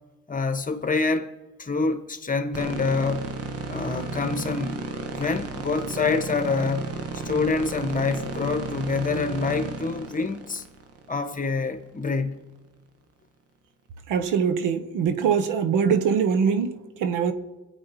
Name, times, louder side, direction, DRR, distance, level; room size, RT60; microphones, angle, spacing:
voice 1, 0.3-1.3 1.6-3.3 3.7-4.8 5.1-10.6 11.1-12.4, left 4 dB, 25° left, 1.5 m, -26 dB
sound 1, 2.5-11.7, right 3 dB, 50° right, 1.7 m, -34 dB
voice 2, 14.1-17.3, right 6 dB, 90° right, 1.3 m, -23 dB
25.0 x 8.5 x 4.9 m
cardioid pair, 90°, 30 cm